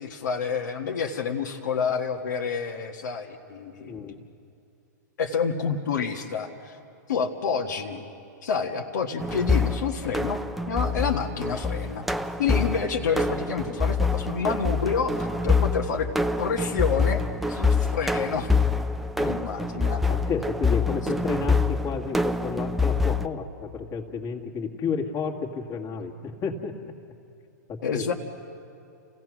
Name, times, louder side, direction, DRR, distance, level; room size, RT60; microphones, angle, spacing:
voice 1, 0.0-4.2 5.2-6.8 7.1-8.0 8.4-10.4 10.7-12.1 12.4-15.1 15.4-16.1 16.4-17.2 17.5-18.6 19.3-20.0 27.8-28.1, left 6 dB, 70° left, 2 dB, 1.6 m, -28 dB
voice 2, 3.8-4.2 19.2-19.5 20.1-26.9 27.7-28.0, left 5 dB, 30° left, 1 dB, 2.0 m, -32 dB
sound 1, 9.2-23.3, left 3 dB, ahead, 0.5 m, -26 dB
28.5 x 16.0 x 6.2 m, 2.6 s
hypercardioid pair, 125°, 10 cm